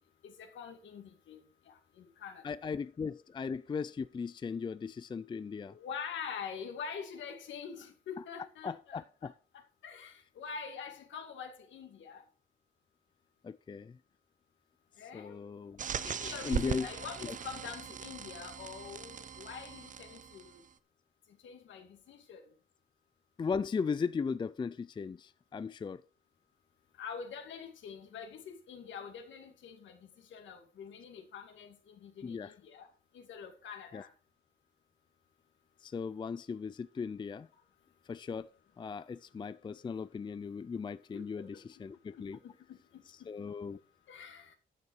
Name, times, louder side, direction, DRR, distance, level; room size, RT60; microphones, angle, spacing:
voice 1, 0.2-2.4 5.7-9.3 9.8-12.2 15.0-15.4 16.0-20.6 21.4-22.4 27.0-30.0 30.3-32.9 33.1-34.1 41.1-41.2 41.5-41.6 42.2-43.3 44.1-44.5, left 6 dB, 70° left, 2.4 m, -45 dB
voice 2, 2.4-5.8 8.2-8.3 8.6-9.3 13.4-14.0 15.1-15.9 16.4-16.9 17.2-17.3 23.4-26.0 32.2-32.5 33.9-34.0 35.8-37.5 38.1-38.5 38.8-42.4 43.3-43.8, left 5 dB, 25° left, 0.4 m, -37 dB
sound 1, 15.8-20.7, right 7 dB, 40° right, 0.8 m, -40 dB
12.0 x 6.7 x 4.7 m
cardioid pair, 90°, 20 cm